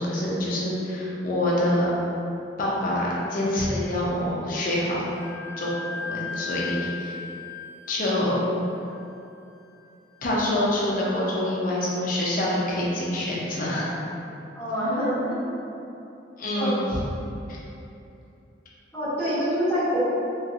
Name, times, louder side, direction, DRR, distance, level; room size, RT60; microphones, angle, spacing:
voice 1, 0.0-1.9 2.6-5.0 5.6-7.2 7.9-8.4 10.2-13.9 16.4-16.9 17.5-17.6, left 1 dB, 45° left, -5 dB, 0.5 m, -26 dB
Wind instrument woodwind instrument, 5.0-12.4, left 5 dB, 90° right, 1.0 m, -39 dB
voice 2, 14.5-15.4 16.5-16.7 18.9-20.0, equal, 10° left, -18 dB, 1.4 m, -26 dB
3.0 x 2.8 x 2.4 m, 2.8 s
head